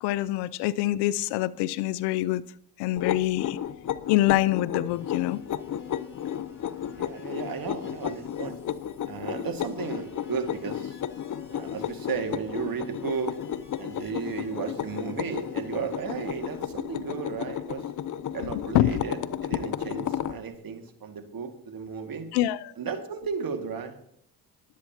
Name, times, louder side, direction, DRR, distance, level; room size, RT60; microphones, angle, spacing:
voice 1, 0.0-2.4 2.8-3.6 4.1-5.4 18.4-19.0 22.3-22.7, left 15 dB, 80° left, 0.6 m, -25 dB
sound 1, 3.0-20.4, left 10 dB, 45° left, 0.7 m, -33 dB
sound 2, 4.9-16.6, left 3 dB, 30° left, 4.3 m, -54 dB
voice 2, 6.6-8.6 9.1-11.0 11.5-13.4 13.8-17.8 18.3-22.3 22.8-24.0, right 6 dB, 55° right, 2.1 m, -34 dB
22.0 x 8.3 x 2.9 m
hypercardioid pair, 45°, 41 cm